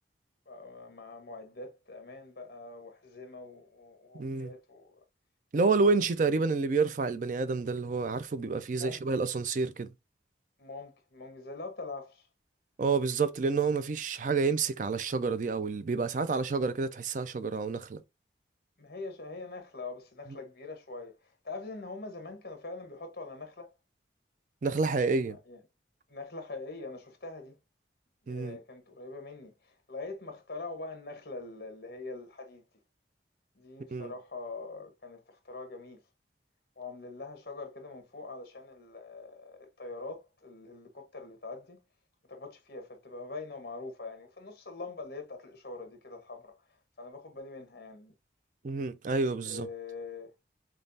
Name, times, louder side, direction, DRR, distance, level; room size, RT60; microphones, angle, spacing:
voice 1, 0.5-5.0 5.6-6.0 8.7-9.0 10.6-12.3 18.8-23.7 25.3-25.6 26.1-27.6 28.3-32.6 33.5-36.0 36.8-41.8 42.3-48.1 49.4-50.3, left 3 dB, 55° left, 1.1 m, -43 dB
voice 2, 4.1-4.5 5.5-9.9 12.8-18.0 24.6-25.4 28.3-28.6 33.9-34.1 48.6-49.7, right 4 dB, 45° right, 0.4 m, -29 dB
5.2 x 2.3 x 2.6 m
head